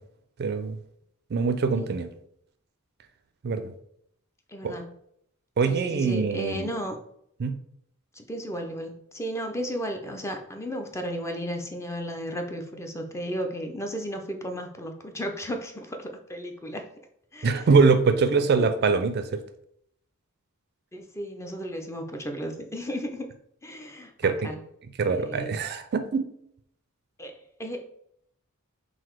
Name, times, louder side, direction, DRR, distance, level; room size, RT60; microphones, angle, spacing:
voice 1, 0.4-0.8 1.3-2.1 3.4-3.7 4.6-4.7 5.6-6.7 7.4-7.5 17.4-19.4 24.2-24.5 25.0-26.2, right 4 dB, 50° right, 9 dB, 0.4 m, -23 dB
voice 2, 4.5-4.9 5.6-7.0 8.1-16.8 17.3-17.7 18.4-18.7 20.9-23.3 23.6-24.6 25.1-25.6 27.2-27.8, equal, 15° left, 4 dB, 0.4 m, -34 dB
4.0 x 2.6 x 4.4 m, 0.71 s
head